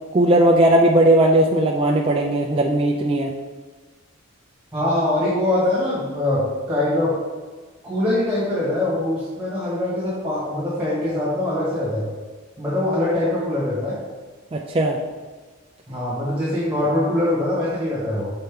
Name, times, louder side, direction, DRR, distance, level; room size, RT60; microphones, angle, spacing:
voice 1, 0.1-3.3 14.5-15.0, right 1 dB, 25° right, 0 dB, 0.3 m, -17 dB
voice 2, 4.7-7.1 7.8-12.1 12.6-14.0 15.9-18.3, left 1 dB, 5° right, -9 dB, 1.6 m, -23 dB
6.6 x 4.3 x 3.6 m, 1.4 s
head